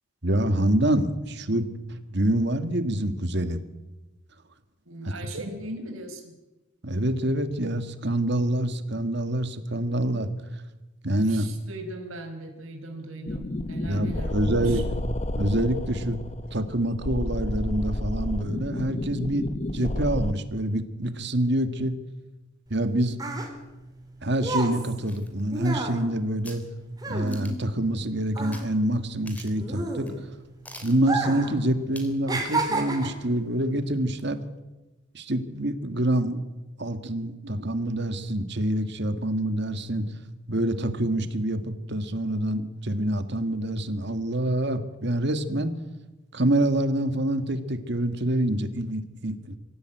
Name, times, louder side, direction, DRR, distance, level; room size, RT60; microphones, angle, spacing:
voice 1, 0.2-3.6 5.3-5.4 6.8-10.3 11.0-11.5 13.9-14.9 15.4-16.2 16.5-19.5 19.7-21.9 22.7-23.2 24.2-26.6 27.1-30.1 30.8-34.4 35.1-36.4 36.8-40.0 40.5-41.6 41.9-45.8 46.3-49.6, right 1 dB, 50° right, 9 dB, 1.8 m, -26 dB
voice 2, 4.8-6.3 11.2-14.8, right 1 dB, 75° right, 3 dB, 5.0 m, -39 dB
sound 1, 13.2-20.3, left 1 dB, 30° left, 0.9 m, -31 dB
sound 2, 22.7-28.0 28.3-30.5 31.0-31.6 31.8-33.3 34.0-34.2, right 3 dB, 20° right, 3.3 m, -31 dB
sound 3, 25.0-26.1 26.4-26.7 27.3-27.7 28.5-28.7 29.0-29.1 29.3-29.7 30.1-30.2 30.7-31.0 31.9-32.2 32.6-32.7, left 1 dB, 5° left, 3.2 m, -45 dB
25.0 x 16.0 x 9.2 m, 1.1 s
head